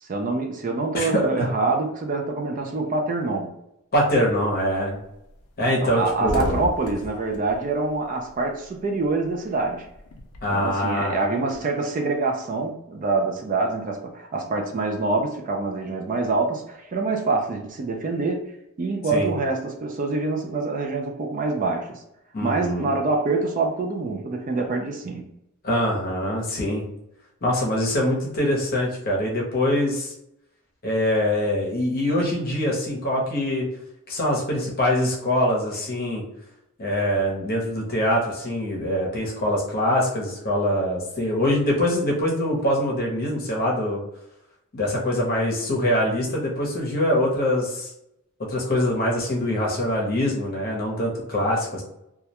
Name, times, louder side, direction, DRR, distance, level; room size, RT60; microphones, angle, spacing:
voice 1, 0.0-3.5 5.8-9.9 10.5-18.5 18.8-22.0 22.4-25.3, right 3 dB, 35° right, 2 dB, 0.3 m, -25 dB
voice 2, 0.9-1.5 3.9-5.0 5.6-6.5 10.4-11.1 19.1-19.3 22.3-22.9 25.6-26.8 27.4-30.1 30.8-33.7 34.1-36.2 36.8-44.0 44.7-47.9 48.5-51.8, left 1 dB, 45° left, -2 dB, 0.7 m, -24 dB
sound 1, 4.2-4.5 4.9-5.0 5.3-5.4 5.7-8.7 9.0-10.7, left 2 dB, 75° left, 0.4 m, -34 dB
2.3 x 2.1 x 2.8 m, 0.81 s
head